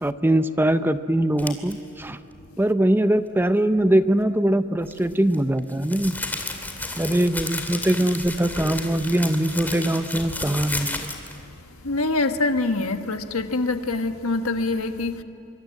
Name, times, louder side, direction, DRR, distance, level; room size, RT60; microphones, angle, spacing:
voice 1, 0.0-2.2 2.6-6.2 7.0-11.1, right 1 dB, 10° right, 0.6 m, -22 dB
sound 1, 1.4-1.7 4.8-11.4, left 2 dB, 10° left, 2.4 m, -32 dB
voice 2, 11.8-15.2, left 2 dB, 80° left, 1.4 m, -24 dB
25.5 x 24.0 x 7.7 m
head